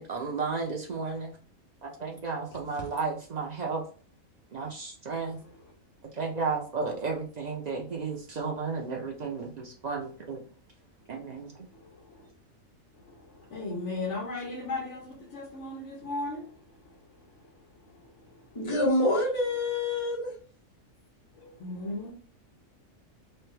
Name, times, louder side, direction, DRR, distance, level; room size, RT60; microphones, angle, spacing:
voice 1, 0.0-1.3 1.8-3.8 4.5-5.4 6.1-10.4 11.1-11.7, right 4 dB, 60° right, 0.4 m, -33 dB
voice 2, 11.7-12.3 12.9-18.7 21.3-22.1, left 2 dB, 60° left, 1.2 m, -38 dB
voice 3, 18.5-20.3, left 1 dB, 25° left, 0.8 m, -26 dB
3.2 x 2.2 x 3.1 m
omnidirectional pair, 1.4 m